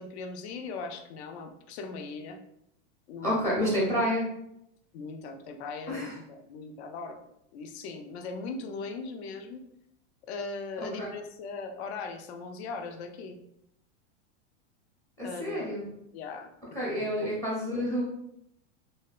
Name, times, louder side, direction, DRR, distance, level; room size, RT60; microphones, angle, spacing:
voice 1, 0.0-2.4 3.1-3.5 4.9-7.2 7.5-9.6 10.3-13.4 15.2-15.8 16.1-16.5 16.9-17.3, left 4 dB, 65° left, 6 dB, 0.5 m, -39 dB
voice 2, 3.2-4.3 5.9-6.2 10.8-11.1 15.2-15.8 16.7-18.0, equal, 10° left, -6 dB, 0.5 m, -29 dB
2.7 x 2.1 x 2.3 m, 0.77 s
supercardioid pair, 145°, 35 cm